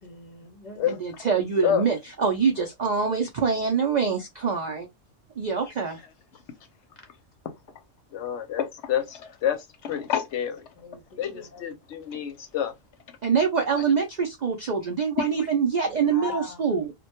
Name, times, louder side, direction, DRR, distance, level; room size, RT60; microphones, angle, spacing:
voice 1, 0.0-0.8 5.6-5.7 10.8-11.6 16.0-16.7, left 3 dB, 50° left, 0.5 m, -41 dB
voice 2, 0.9-4.9 5.4-6.0 13.2-16.9, right 6 dB, 75° right, 0.4 m, -25 dB
voice 3, 8.1-10.6 11.2-12.7 15.2-15.3, left 9 dB, 70° left, 0.8 m, -28 dB
2.2 x 2.2 x 2.8 m
omnidirectional pair, 1.3 m